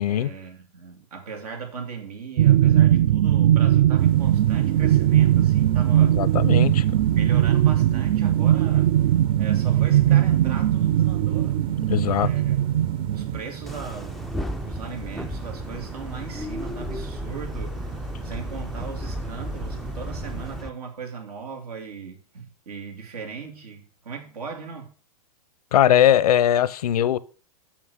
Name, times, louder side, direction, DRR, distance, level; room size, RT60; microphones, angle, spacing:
voice 1, 0.1-6.2 6.7-8.9 9.4-11.6 12.1-12.6 13.1-14.3 14.6-24.9, right 5 dB, 85° right, 2.5 m, -38 dB
sound 1, 2.4-13.4, right 12 dB, 60° right, 0.5 m, -19 dB
sound 2, 4.0-20.6, right 7 dB, 25° right, 0.8 m, -38 dB
voice 2, 6.0-6.8 11.9-12.3 25.7-27.2, left 11 dB, 80° left, 0.6 m, -20 dB
sound 3, 13.7-20.7, left 1 dB, ahead, 0.3 m, -34 dB
6.3 x 5.8 x 6.3 m
hypercardioid pair, 125°, 19 cm